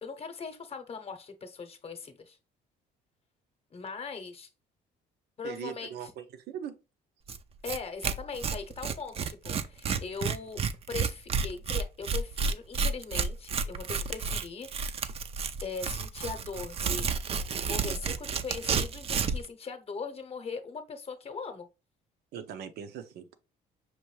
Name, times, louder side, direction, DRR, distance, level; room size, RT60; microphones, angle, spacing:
voice 1, 0.0-2.4 3.7-4.5 5.4-5.9 7.6-10.6 10.9-14.7 15.6-17.1 17.6-21.7, left 4 dB, 35° left, 0.8 m, -40 dB
voice 2, 5.4-6.8 22.3-23.4, right 8 dB, 75° right, 0.7 m, -40 dB
Tearing, 7.3-7.4 7.7-7.8 8.0-19.5, right 5 dB, 35° right, 0.4 m, -31 dB
5.9 x 2.6 x 3.1 m
cardioid pair, 110°, 17 cm